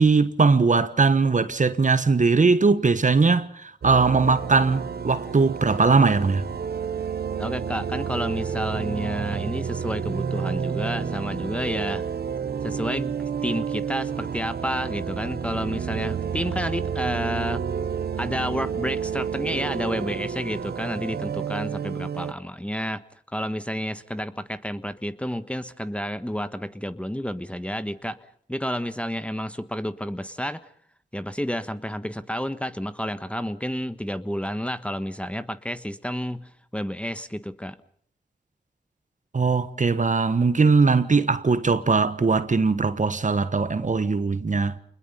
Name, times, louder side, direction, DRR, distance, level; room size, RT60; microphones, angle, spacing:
voice 1, 0.0-6.4 39.3-44.8, right 4 dB, 45° right, 1.4 m, -20 dB
sound 1, 3.8-22.3, right 7 dB, 65° right, 0.9 m, -30 dB
voice 2, 7.4-12.0 12.6-17.7 18.2-23.0 23.3-28.2 28.5-30.6 31.1-37.8, equal, 5° left, 1.3 m, -30 dB
27.5 x 21.0 x 5.5 m
cardioid pair, 45°, 18 cm